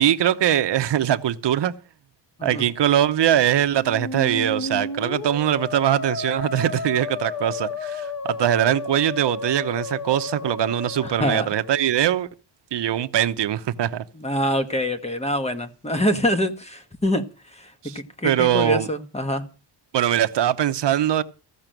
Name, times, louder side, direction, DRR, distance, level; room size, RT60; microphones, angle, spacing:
voice 1, 0.0-1.7 2.4-12.3 12.7-14.0 17.8-18.9 19.9-21.2, right 11 dB, 65° right, 0.9 m, -22 dB
Musical instrument, 3.7-11.8, left 3 dB, 50° left, 2.0 m, -32 dB
voice 2, 11.0-11.5 14.2-17.2 17.5-17.7 17.9-19.4, equal, 15° left, 1.3 m, -25 dB
15.5 x 6.0 x 9.1 m
wide cardioid pair, 170°, 44 cm